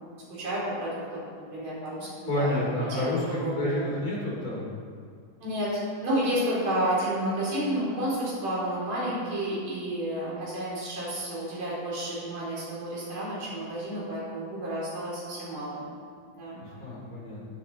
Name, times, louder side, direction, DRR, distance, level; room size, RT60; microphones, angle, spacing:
voice 1, 0.3-1.2 1.5-2.6 2.9-3.8 5.4-15.9 16.3-16.6, right 1 dB, 55° right, -7 dB, 5.4 m, -31 dB
voice 2, 2.3-4.7 16.6-17.4, left 1 dB, 25° left, -5 dB, 3.7 m, -29 dB
16.0 x 9.5 x 4.5 m, 2.2 s
omnidirectional pair, 3.9 m